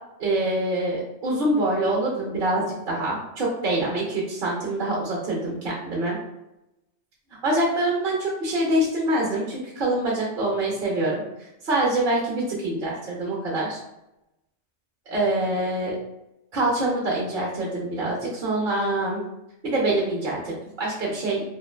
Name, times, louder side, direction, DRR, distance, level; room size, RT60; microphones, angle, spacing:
voice 1, 0.2-6.2 7.4-11.2 11.6-13.8 15.1-15.9 16.5-19.2 19.6-21.4, right 1 dB, 50° right, -4 dB, 0.8 m, -25 dB
3.0 x 2.4 x 2.2 m, 0.89 s
omnidirectional pair, 1.3 m